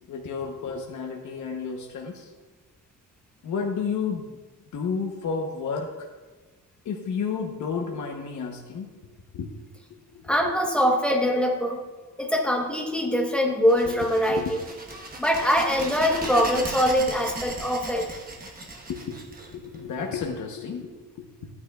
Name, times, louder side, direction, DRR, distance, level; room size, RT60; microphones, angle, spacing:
voice 1, 0.1-2.3 3.4-4.4 4.7-6.1 6.8-8.9 9.3-9.5 9.9-10.6 13.8-14.5 18.9-19.3 19.5-20.9, left 5 dB, 55° left, 1 dB, 0.9 m, -31 dB
voice 2, 10.3-11.8 12.2-14.6 15.2-18.1, equal, 5° left, 1 dB, 1.0 m, -23 dB
sound 1, 13.7-20.2, right 2 dB, 25° right, 1.1 m, -37 dB
13.5 x 9.5 x 2.3 m, 1.3 s
wide cardioid pair, 165°, 36 cm